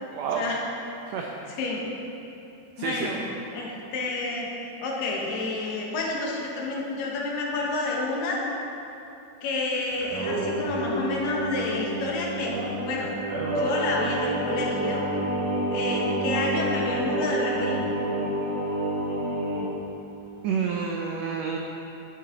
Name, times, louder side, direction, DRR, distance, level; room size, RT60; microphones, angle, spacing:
voice 1, 0.1-0.4 1.1-1.3 2.8-3.1 20.4-21.6, right 6 dB, 85° right, 1 dB, 1.5 m, -29 dB
voice 2, 2.8-3.2 3.5-8.4 9.4-12.5 12.9-13.1 13.4-15.0 15.7-17.9, left 2 dB, 75° left, -2 dB, 3.1 m, -29 dB
Singing, 9.9-19.7, right 1 dB, 65° right, 2.9 m, -28 dB
11.0 x 10.5 x 4.0 m, 2.9 s
omnidirectional pair, 4.0 m